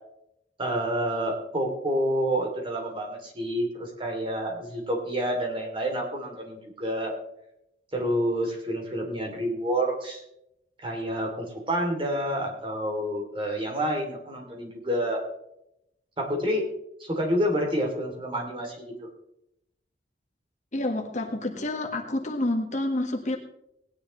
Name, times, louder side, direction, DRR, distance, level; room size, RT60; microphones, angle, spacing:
voice 1, 0.6-7.1 7.9-10.2 10.8-15.2 16.2-16.7 17.0-18.9, equal, 30° right, 1 dB, 2.9 m, -28 dB
voice 2, 20.7-23.4, left 1 dB, 45° left, 2 dB, 1.6 m, -28 dB
19.0 x 10.0 x 3.2 m, 0.80 s
head